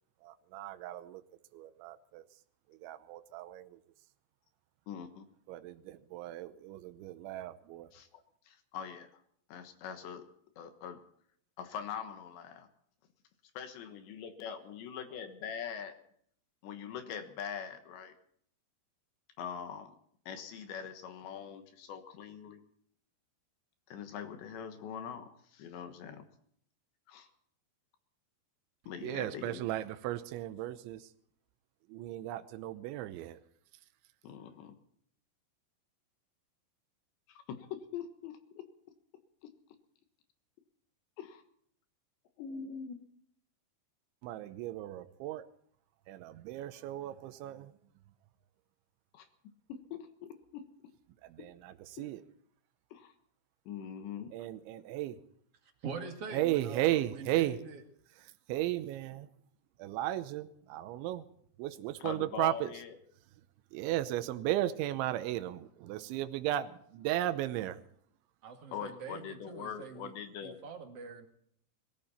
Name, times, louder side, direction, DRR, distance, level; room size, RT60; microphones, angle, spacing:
voice 1, 0.2-1.2 1.5-2.2 2.7-3.8 5.5-7.9 29.0-31.1 31.9-33.4 44.2-45.5 46.1-47.7 51.2-52.2 54.3-55.2 56.3-57.6 58.2-59.3 59.8-61.2 61.6-62.7 63.7-67.8, right 14 dB, 85° right, 11 dB, 3.2 m, -35 dB
voice 2, 4.9-5.3 7.9-9.2 9.5-10.3 10.6-11.0 11.6-12.7 13.6-15.9 16.6-18.1 19.4-20.0 20.3-22.6 23.9-26.3 27.1-27.3 28.9-29.6 34.2-34.8 37.3-38.6 39.4-39.5 41.2-41.4 42.4-43.0 49.1-49.3 49.7-50.7 51.4-51.5 52.9-53.1 53.7-54.3 62.0-62.9 68.7-70.6, left 7 dB, 75° left, 8 dB, 3.5 m, -43 dB
voice 3, 55.8-57.8 68.4-70.1 70.4-71.3, right 5 dB, 45° right, 4 dB, 2.3 m, -44 dB
22.0 x 14.5 x 4.3 m, 0.65 s
omnidirectional pair, 5.3 m